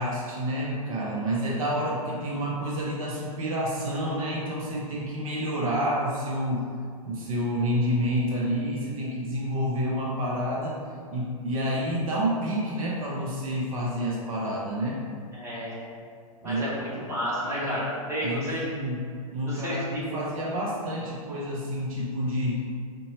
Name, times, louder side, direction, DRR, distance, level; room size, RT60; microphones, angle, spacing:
voice 1, 0.0-6.7 7.0-10.8 11.1-15.0 16.4-17.0 17.4-17.8 18.2-19.1 19.3-22.6, equal, 65° right, -4 dB, 0.6 m, -29 dB
voice 2, 15.3-15.8 16.4-18.7 19.4-20.0, equal, 15° right, -8 dB, 1.1 m, -31 dB
3.9 x 2.2 x 2.8 m, 2.2 s
hypercardioid pair, 105°, 19 cm